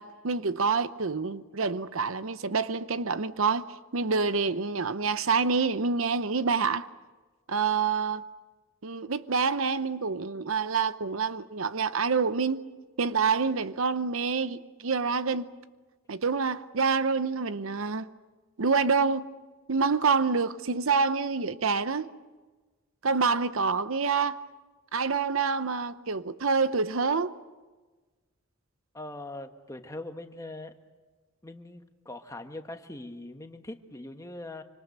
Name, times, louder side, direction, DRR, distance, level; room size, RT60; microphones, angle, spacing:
voice 1, 0.0-3.6 3.9-6.9 7.5-8.2 8.8-12.6 13.0-15.5 16.1-18.1 18.6-19.3 19.7-22.1 23.0-24.4 24.9-27.3, right 5 dB, 75° right, 0.8 m, -27 dB
voice 2, 28.9-30.7 31.4-34.6, left 2 dB, 15° left, 1.3 m, -41 dB
26.0 x 25.5 x 6.7 m
head